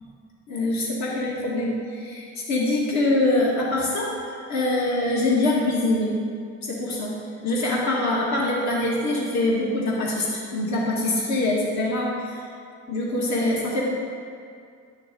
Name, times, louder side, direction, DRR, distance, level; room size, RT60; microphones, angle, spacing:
voice 1, 0.5-6.1 6.6-7.1 7.4-12.4 12.9-13.8, left 2 dB, 65° left, -4 dB, 2.0 m, -24 dB
11.5 x 6.5 x 3.9 m, 2.3 s
cardioid pair, 90°, 30 cm